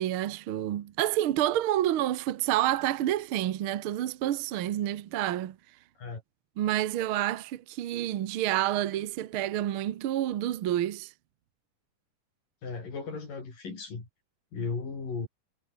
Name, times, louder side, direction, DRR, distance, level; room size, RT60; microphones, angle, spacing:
voice 1, 0.0-5.6 6.6-11.1, right 13 dB, 65° right, 1.3 m, -29 dB
voice 2, 12.6-14.1 14.5-15.3, left 4 dB, 80° left, 7.9 m, -36 dB
omnidirectional pair, 3.8 m